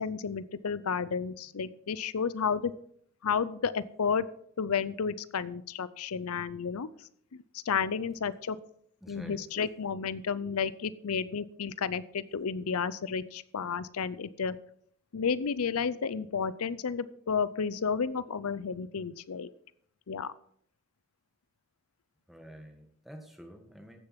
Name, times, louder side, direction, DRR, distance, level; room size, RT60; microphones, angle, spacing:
voice 1, 0.0-2.7 3.2-4.2 4.6-8.6 9.1-14.6 15.1-19.5 20.1-20.3, left 6 dB, 90° left, 17 dB, 0.6 m, -32 dB
voice 2, 9.0-9.4 22.3-24.0, equal, ahead, 4 dB, 1.6 m, -48 dB
15.0 x 6.8 x 5.9 m, 0.65 s
head